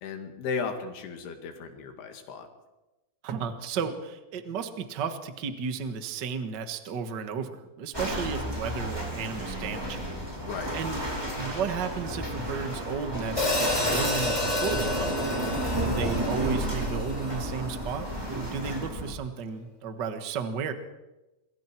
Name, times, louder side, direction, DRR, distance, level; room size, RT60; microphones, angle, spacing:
voice 1, 0.0-2.5 10.4-10.8 15.9-16.2, left 5 dB, 85° left, 5 dB, 4.1 m, -35 dB
voice 2, 3.2-10.1 10.7-11.0 11.3-15.4 15.8-20.7, right 6 dB, 75° right, 8 dB, 1.0 m, -34 dB
sound 1, 7.9-19.1, right 1 dB, 5° right, 4.2 m, -32 dB
Hi-hat, 13.4-17.7, left 2 dB, 10° left, 1.9 m, -30 dB
27.5 x 22.0 x 4.6 m, 1.0 s
omnidirectional pair, 4.5 m